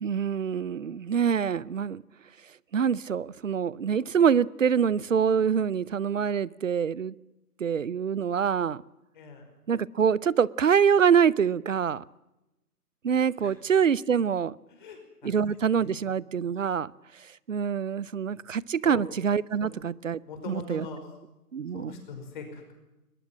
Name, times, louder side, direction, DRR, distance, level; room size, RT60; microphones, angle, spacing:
voice 1, 0.0-2.0 2.7-7.1 7.6-8.8 9.7-12.0 13.0-14.6 15.2-16.9 17.5-20.2 20.5-20.9 21.5-21.9, right 7 dB, 55° right, 0.7 m, -25 dB
voice 2, 9.1-9.5 13.4-13.5 14.7-15.3 15.8-16.0 18.8-19.1 19.6-19.7 20.3-21.0 21.7-22.7, left 3 dB, 30° left, 5.3 m, -41 dB
22.5 x 21.0 x 7.5 m
figure-of-eight pair, 155°, 47 cm